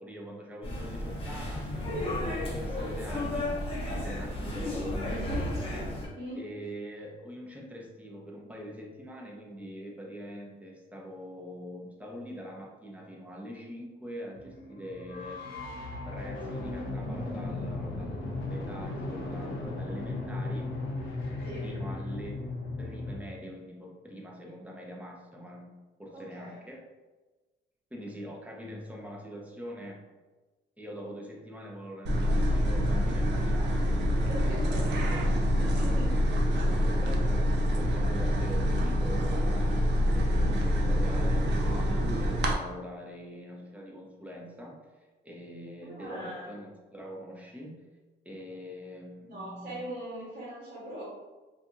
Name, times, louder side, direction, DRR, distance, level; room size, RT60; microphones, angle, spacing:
voice 1, 0.0-6.0 6.3-15.4 16.1-20.7 21.6-22.4 22.8-25.7 26.0-26.8 27.9-30.0 30.8-35.2 35.7-36.4 36.7-37.5 37.7-39.9 40.1-44.8 45.2-47.9 48.2-49.8, equal, 5° right, -2 dB, 0.6 m, -43 dB
sound 1, 0.6-6.1, left 1 dB, 30° left, 0.8 m, -33 dB
voice 2, 6.1-6.4 21.4-21.7 26.1-26.6 34.3-35.1 35.6-36.1 45.9-46.5 49.2-51.0, right 1 dB, 45° right, -8 dB, 1.1 m, -41 dB
sound 2, 14.3-23.2, left 2 dB, 75° left, 0.8 m, -36 dB
sound 3, 32.1-42.5, equal, 65° right, 0.5 m, -26 dB
2.6 x 2.4 x 2.5 m, 1.2 s
cardioid pair, 90°, 20 cm